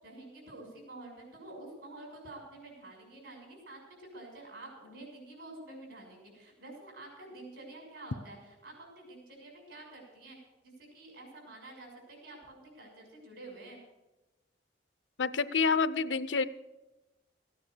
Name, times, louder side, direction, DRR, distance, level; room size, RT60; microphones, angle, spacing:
voice 1, 0.0-10.4 10.6-13.8, right 2 dB, 75° right, 0 dB, 6.3 m, -49 dB
voice 2, 15.2-16.4, left 5 dB, 90° left, 15 dB, 0.6 m, -28 dB
15.5 x 9.6 x 6.7 m, 1.1 s
head